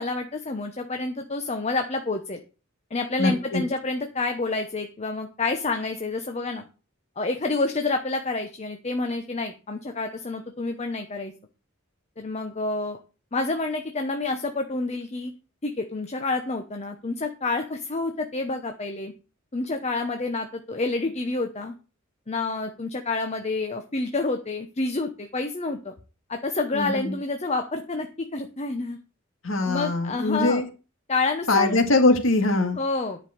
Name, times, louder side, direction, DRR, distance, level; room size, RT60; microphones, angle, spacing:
voice 1, 0.0-2.4 2.9-6.7 7.2-11.3 12.2-13.0 13.3-15.3 15.6-19.1 19.5-21.7 22.3-25.9 26.3-29.0 29.6-30.6 31.1-31.8 32.8-33.2, left 3 dB, 30° left, 5 dB, 0.9 m, -28 dB
voice 2, 3.2-3.6 26.7-27.1 29.4-30.7 31.5-32.8, left 2 dB, 70° left, 5 dB, 2.0 m, -22 dB
10.5 x 5.4 x 6.4 m, 0.34 s
head